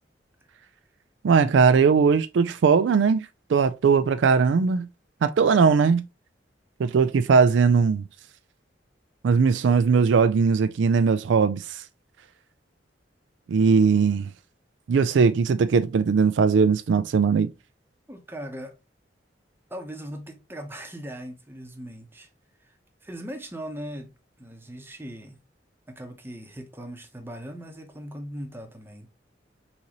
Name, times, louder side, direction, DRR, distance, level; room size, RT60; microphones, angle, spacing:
voice 1, 1.2-4.9 5.2-6.0 6.8-8.0 9.2-11.8 13.5-14.3 14.9-17.5, right 5 dB, 90° right, 0.4 m, -20 dB
voice 2, 18.1-18.8 19.7-22.3 22.6-24.1 24.4-25.4 25.9-29.1, equal, 15° right, 0.9 m, -39 dB
4.1 x 3.9 x 2.9 m
head